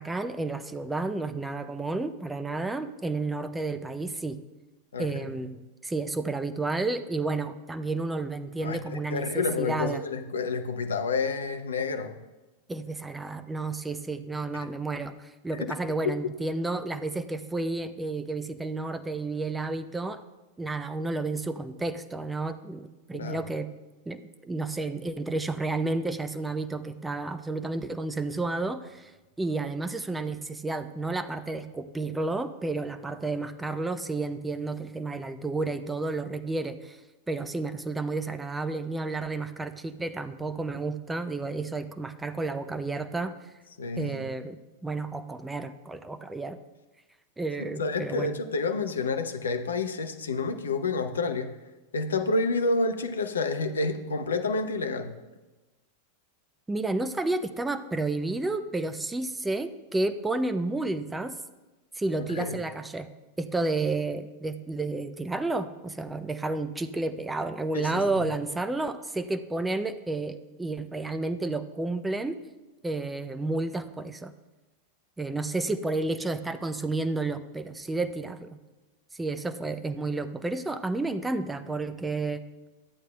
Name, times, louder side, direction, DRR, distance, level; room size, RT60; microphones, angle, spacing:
voice 1, 0.0-4.4 5.0-10.0 12.7-20.2 20.6-23.7 24.1-29.1 29.4-37.0 37.3-43.5 44.0-44.6 44.8-46.6 47.4-48.4 56.7-61.3 62.0-63.1 63.4-72.4 72.8-74.3 75.2-78.6 79.1-82.4, right 3 dB, 10° right, 10 dB, 0.5 m, -31 dB
voice 2, 4.9-5.3 8.6-12.2 14.5-14.7 16.0-16.1 23.2-23.5 43.8-44.3 47.6-51.6 51.9-55.2 62.2-62.6 67.7-68.2, left 3 dB, 70° left, 7 dB, 0.7 m, -29 dB
13.5 x 8.1 x 2.2 m, 1.1 s
figure-of-eight pair, 90°, 0 cm